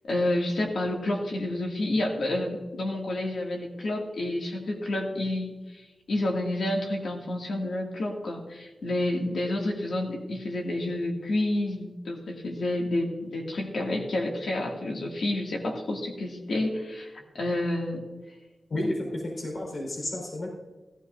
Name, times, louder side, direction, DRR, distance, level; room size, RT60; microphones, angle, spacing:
voice 1, 0.1-5.8 6.1-18.0, left 1 dB, 90° left, 0 dB, 2.3 m, -29 dB
voice 2, 18.7-20.5, left 1 dB, 75° left, -1 dB, 4.5 m, -31 dB
17.0 x 14.5 x 2.7 m, 1.2 s
cardioid pair, 60°, 0 cm